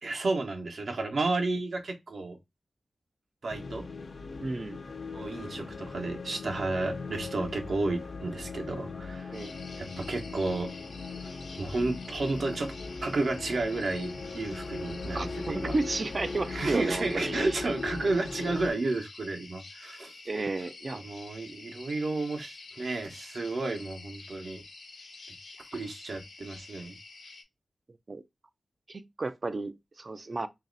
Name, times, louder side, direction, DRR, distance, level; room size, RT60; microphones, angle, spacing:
voice 1, 0.0-2.4 3.4-3.9 5.1-9.3 9.8-10.7 11.6-12.7 13.0-15.7 16.5-20.2 21.0-24.6 25.7-27.0, right 2 dB, 70° right, 0.9 m, -32 dB
sound 1, 3.5-18.7, left 4 dB, 50° left, 0.5 m, -39 dB
voice 2, 4.4-4.8 9.3-9.5 15.1-17.6 20.3-21.0 28.1-28.2 28.9-30.5, right 3 dB, 40° right, 0.4 m, -33 dB
sound 2, 9.3-27.4, left 3 dB, 85° left, 0.9 m, -48 dB
3.1 x 2.7 x 3.9 m
wide cardioid pair, 130°, 0 cm